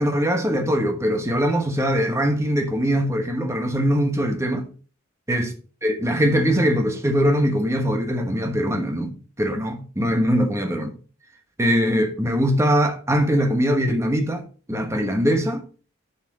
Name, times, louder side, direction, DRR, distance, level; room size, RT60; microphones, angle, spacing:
voice 1, 0.0-4.7 5.3-5.5 5.8-11.0 11.6-14.4 14.7-15.6, equal, 15° right, 1.3 m, -22 dB
9.9 x 5.7 x 4.1 m
head